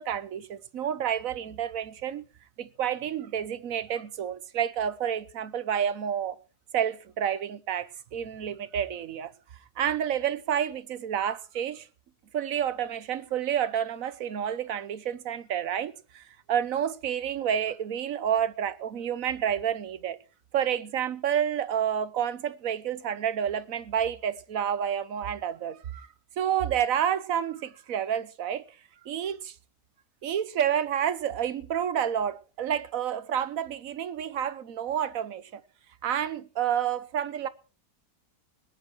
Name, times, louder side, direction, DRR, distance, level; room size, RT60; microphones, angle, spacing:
voice 1, 0.0-2.2 2.6-6.4 6.7-9.3 9.8-11.9 12.3-20.2 20.5-26.1 26.4-28.6 29.0-29.5 30.2-35.6 36.0-37.5, right 9 dB, 60° right, 1.3 m, -29 dB
20.5 x 10.5 x 4.6 m
omnidirectional pair, 1.7 m